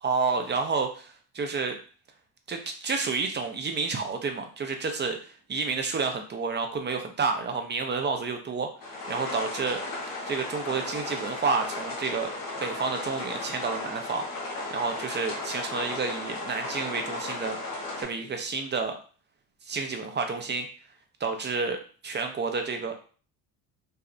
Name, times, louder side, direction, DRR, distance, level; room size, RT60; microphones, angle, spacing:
voice 1, 0.0-1.8 2.5-8.7 9.1-9.8 10.3-12.3 12.6-14.2 14.7-17.6 18.0-18.9 19.7-20.7 21.2-21.8 22.0-22.9, right 4 dB, 25° right, 5 dB, 0.5 m, -30 dB
sound 1, 8.8-18.0, left 2 dB, 90° left, 0.9 m, -35 dB
2.6 x 2.0 x 2.4 m, 0.39 s
supercardioid pair, 70°, 45 cm